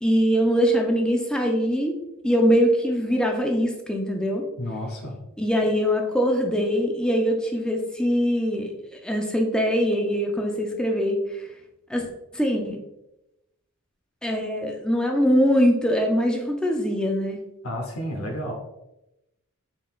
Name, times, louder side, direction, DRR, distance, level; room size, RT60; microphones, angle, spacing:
voice 1, 0.0-4.4 5.4-11.5 11.9-12.1 12.3-12.8 14.2-17.4, equal, 5° left, 2 dB, 0.4 m, -22 dB
voice 2, 4.6-5.2 17.6-18.5, equal, 75° left, 2 dB, 0.9 m, -31 dB
4.0 x 3.6 x 2.4 m, 0.91 s
head